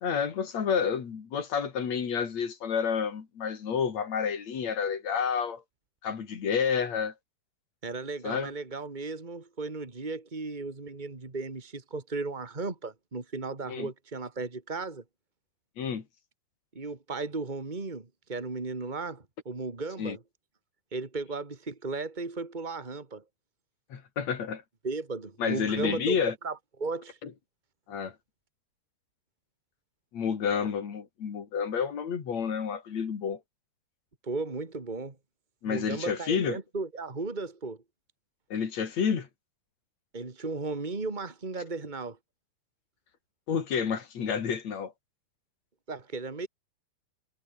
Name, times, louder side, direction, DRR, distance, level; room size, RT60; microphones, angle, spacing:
voice 1, 0.0-5.6 6.0-7.1 8.2-8.5 13.7-13.9 15.8-16.0 20.0-20.2 23.9-24.6 25.4-26.3 27.2-27.3 27.9-28.1 30.1-33.4 35.6-36.6 38.5-39.3 43.5-44.9, left 7 dB, 40° left, 3.5 m, -30 dB
voice 2, 7.8-15.0 16.7-20.2 20.9-23.2 24.8-26.1 26.4-27.2 34.2-35.1 35.7-37.8 40.1-42.2 45.9-46.5, right 3 dB, 50° right, 0.5 m, -35 dB
omnidirectional pair, 5.2 m